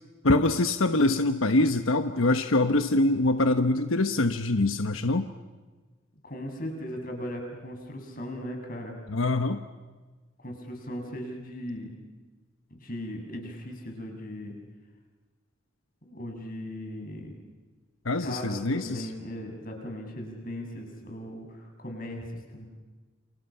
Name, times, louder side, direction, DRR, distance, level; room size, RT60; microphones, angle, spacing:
voice 1, 0.2-5.3 9.1-9.6 18.0-19.1, left 2 dB, 90° left, 8 dB, 1.2 m, -24 dB
voice 2, 6.2-9.0 10.4-11.9 12.7-14.5 16.0-17.4 18.2-22.2 22.5-22.7, equal, 45° left, 3 dB, 6.9 m, -38 dB
29.5 x 28.5 x 5.7 m, 1.3 s
head